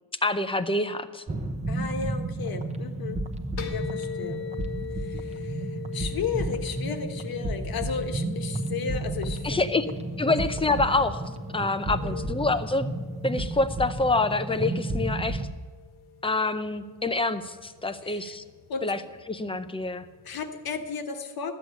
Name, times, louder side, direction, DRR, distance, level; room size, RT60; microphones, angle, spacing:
voice 1, 0.2-1.2 9.4-9.9 10.2-11.2 11.5-12.9 13.2-15.4 16.2-18.4 18.8-19.0 19.3-20.1, left 3 dB, 15° left, 11 dB, 0.5 m, -26 dB
sound 1, 1.3-15.5, right 2 dB, 15° right, 0.8 m, -32 dB
voice 2, 1.7-3.2 3.7-4.5 5.0-9.6 11.9-12.3 18.0-18.3 18.7-18.9 20.2-21.5, left 6 dB, 65° left, 6 dB, 1.3 m, -34 dB
sound 2, 3.6-20.9, left 8 dB, 90° left, 1.7 m, -43 dB
13.0 x 8.0 x 9.2 m, 1.4 s
wide cardioid pair, 160°, 38 cm